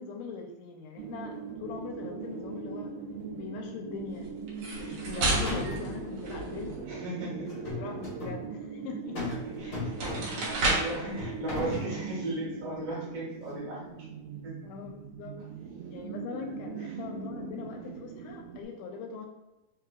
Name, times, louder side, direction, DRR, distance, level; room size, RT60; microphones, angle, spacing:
voice 1, 0.0-2.9 3.3-4.3 4.7-6.9 7.3-9.4 10.2-10.7 14.6-15.4 15.9-19.3, left 5 dB, 80° left, 3 dB, 2.0 m, -41 dB
sound 1, 1.0-18.6, right 6 dB, 90° right, 1.6 m, -40 dB
sound 2, 4.5-6.9 9.3-9.4 9.8-11.0, right 2 dB, 70° right, 1.6 m, -31 dB
sound 3, 4.8-5.1 5.5-6.0 7.5-8.4 9.2-9.4 9.7-10.5 11.2-11.9, left 3 dB, 60° left, 1.0 m, -36 dB
voice 2, 6.9-7.5 9.6-13.8 14.4-14.5 16.8-16.9, right 2 dB, 45° right, -5 dB, 1.8 m, -36 dB
4.8 x 3.4 x 2.3 m, 1.0 s
omnidirectional pair, 4.0 m